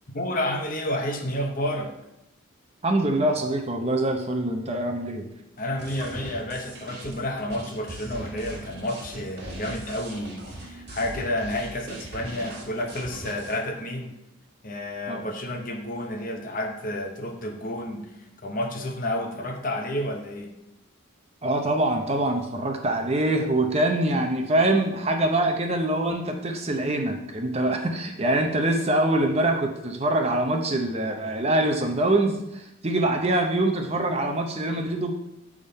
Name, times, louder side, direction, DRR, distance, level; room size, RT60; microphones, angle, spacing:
voice 1, 0.1-1.9 5.6-14.2 14.6-20.5, left 1 dB, 40° left, 4 dB, 0.9 m, -30 dB
voice 2, 2.8-5.3 15.1-15.2 21.4-35.1, right 1 dB, 30° right, 4 dB, 0.7 m, -24 dB
sound 1, 5.8-13.6, right 1 dB, 50° right, 1.7 m, -40 dB
8.6 x 3.7 x 5.3 m, 0.86 s
head